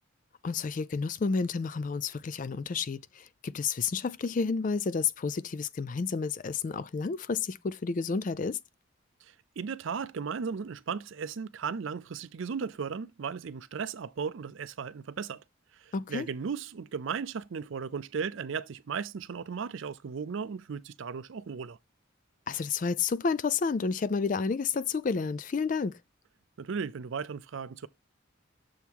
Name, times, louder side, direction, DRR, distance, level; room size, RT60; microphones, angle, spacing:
voice 1, 0.4-8.6 15.9-16.3 22.5-26.0, left 5 dB, 40° left, 0.3 m, -30 dB
voice 2, 9.2-15.4 15.7-21.8 26.6-27.9, right 6 dB, 65° right, 0.4 m, -36 dB
7.0 x 3.6 x 4.5 m
head